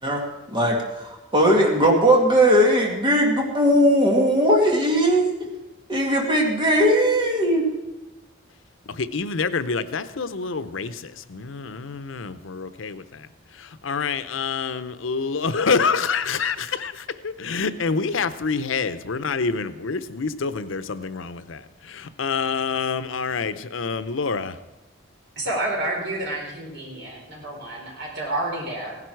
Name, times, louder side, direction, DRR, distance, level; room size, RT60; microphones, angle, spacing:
voice 1, 0.0-5.5 5.9-7.7, equal, 25° right, -1 dB, 2.1 m, -19 dB
voice 2, 8.9-24.6, left 5 dB, 90° left, 13 dB, 0.7 m, -27 dB
voice 3, 25.4-29.0, right 1 dB, 60° right, -2 dB, 4.3 m, -29 dB
16.5 x 11.0 x 4.6 m, 1.1 s
head